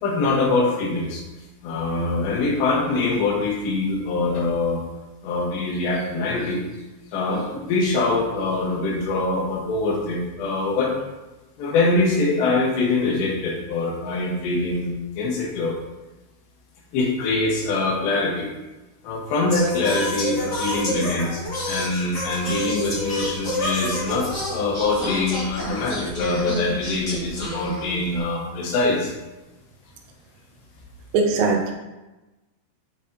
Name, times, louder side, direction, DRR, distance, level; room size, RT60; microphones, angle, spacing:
voice 1, 0.0-1.2 1.6-4.8 5.2-6.6 7.1-10.9 11.6-15.8 16.9-18.5 19.0-21.4 21.7-29.1, left 3 dB, 80° left, -2 dB, 3.5 m, -24 dB
Singing, 19.5-28.2, left 1 dB, 55° left, 1.0 m, -29 dB
voice 2, 31.1-31.7, right 4 dB, 85° right, 2 dB, 2.8 m, -20 dB
8.0 x 5.2 x 2.7 m, 1.1 s
omnidirectional pair, 4.9 m